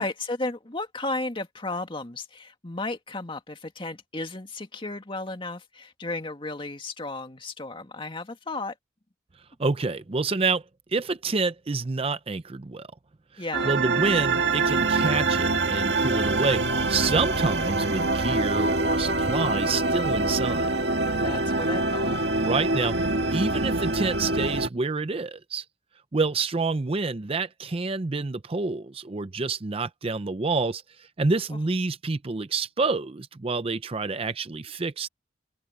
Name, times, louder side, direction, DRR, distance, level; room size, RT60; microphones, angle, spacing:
voice 1, 0.0-8.7 13.4-13.7 21.2-22.2, left 2 dB, 30° left, 2.1 m, -34 dB
voice 2, 9.6-10.6 10.9-12.9 13.3-20.7 22.4-23.0 23.3-25.6 26.1-35.1, right 3 dB, 30° right, 0.6 m, -28 dB
sound 1, 13.5-24.7, right 2 dB, 65° right, 2.1 m, -25 dB
head